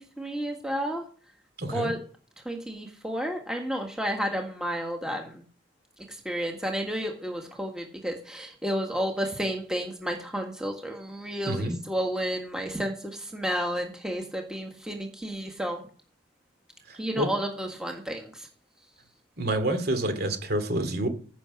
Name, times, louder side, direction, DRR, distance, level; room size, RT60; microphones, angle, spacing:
voice 1, 0.2-1.0 1.7-2.0 2.4-5.4 6.0-15.8 16.9-18.5, equal, 5° right, 2 dB, 1.6 m, -31 dB
voice 2, 1.6-1.9 11.5-11.8 16.9-17.3 19.4-21.1, right 1 dB, 50° right, 8 dB, 2.5 m, -28 dB
15.5 x 6.2 x 5.9 m, 0.43 s
head